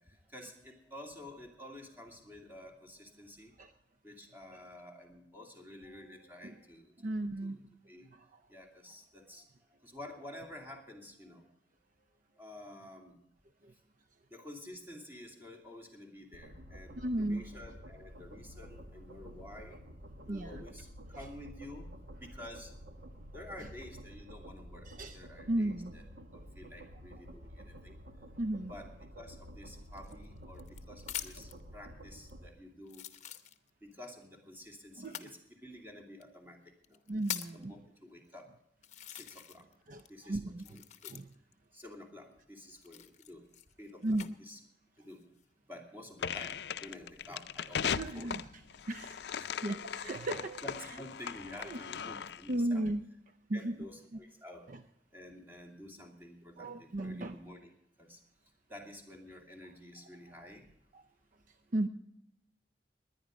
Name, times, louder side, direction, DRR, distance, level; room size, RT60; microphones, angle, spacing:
voice 1, 0.0-3.5 4.0-7.1 7.4-7.5 7.9-8.1 8.5-9.5 9.8-11.5 12.0-12.1 12.3-13.2 14.3-19.8 20.3-21.9 22.2-22.7 23.3-24.9 25.1-26.0 26.3-28.0 28.7-28.9 29.2-33.1 33.8-37.0 37.5-38.5 39.1-39.7 40.1-41.1 41.7-43.5 43.8-44.6 45.0-45.3 45.7-48.3 49.4-49.5 50.6-52.8 53.5-54.7 55.1-57.7 58.0-58.2 58.7-60.7, left 1 dB, 10° right, 1 dB, 2.6 m, -50 dB
voice 2, 7.0-7.6 8.1-8.4 13.6-13.7 17.0-17.4 20.3-20.6 23.6-23.7 24.8-25.9 28.4-28.7 35.0-35.3 37.1-37.7 39.9-40.8 41.1-41.3 44.0-44.3 47.8-48.6 48.9-49.2 49.6-50.6 51.6-51.8 52.5-53.0 53.5-53.8 54.7-54.8 56.6-57.4 60.3-60.5 60.9-61.0 61.7-61.9, right 1 dB, 50° right, 9 dB, 0.6 m, -35 dB
sound 1, 16.3-32.5, equal, 70° right, 1.3 m, -50 dB
sound 2, 29.9-31.6 32.3-32.4 32.9-33.9 35.0-35.3 36.2-36.3 36.8-37.6 38.3-38.4 38.8-39.7 40.0-41.5 42.8-44.3 45.0-45.4, left 11 dB, 45° left, 0.8 m, -44 dB
sound 3, 46.2-52.5, left 7 dB, 65° left, 0.5 m, -38 dB
20.0 x 10.0 x 5.2 m, 0.81 s
head